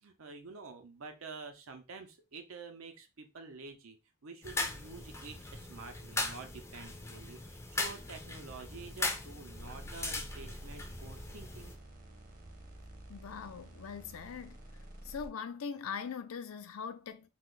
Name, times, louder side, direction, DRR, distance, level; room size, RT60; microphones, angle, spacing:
voice 1, 0.0-4.0 4.2-11.8, right 4 dB, 90° right, 0.7 m, -49 dB
sound 1, 4.4-11.7, left 2 dB, 15° left, 0.4 m, -39 dB
sound 2, 9.6-15.3, right 1 dB, 40° right, 0.7 m, -50 dB
voice 2, 13.1-14.6 15.0-17.3, left 6 dB, 85° left, 0.4 m, -41 dB
2.4 x 2.3 x 3.7 m
head